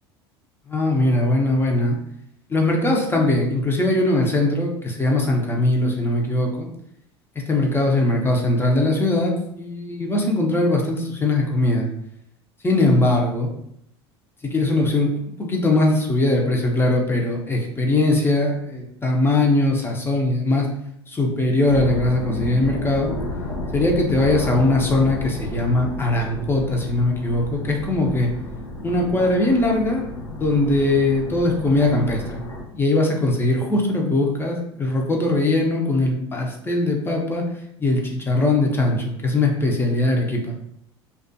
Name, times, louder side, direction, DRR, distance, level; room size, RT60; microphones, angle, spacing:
voice 1, 0.7-2.0 2.5-6.7 7.5-11.9 12.6-13.5 14.4-20.7 21.1-23.1 23.7-28.3 28.8-30.0 30.3-32.4 32.7-37.5 37.8-40.5, left 2 dB, 15° left, 0 dB, 0.6 m, -20 dB
sound 1, 21.7-32.6, left 2 dB, 85° left, 0.5 m, -32 dB
2.4 x 2.3 x 2.6 m, 0.76 s
hypercardioid pair, 75°, 14 cm